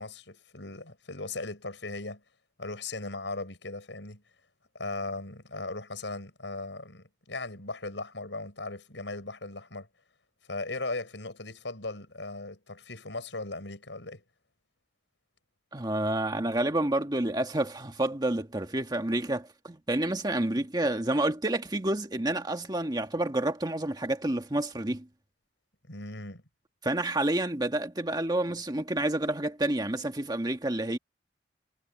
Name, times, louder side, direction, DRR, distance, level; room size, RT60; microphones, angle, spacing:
voice 1, 0.0-2.2 2.6-4.2 4.7-9.9 10.5-14.2 25.9-26.4, left 2 dB, 85° left, 6.4 m, -38 dB
voice 2, 15.7-25.1 26.8-31.0, right 1 dB, 25° right, 1.5 m, -29 dB
head